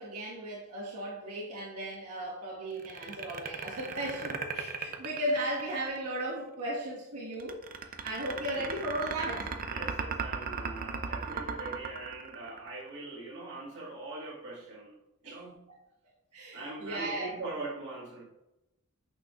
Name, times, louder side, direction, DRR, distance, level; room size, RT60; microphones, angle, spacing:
voice 1, 0.0-9.5 15.2-15.4 16.3-17.3, right 1 dB, 85° right, 1.6 m, -36 dB
sound 1, 2.8-6.0 7.4-12.9, right 5 dB, 40° right, 0.5 m, -36 dB
voice 2, 4.9-5.4 8.2-8.7 9.6-15.7 16.5-18.2, right 2 dB, 60° right, 2.1 m, -42 dB
8.3 x 6.2 x 2.5 m
head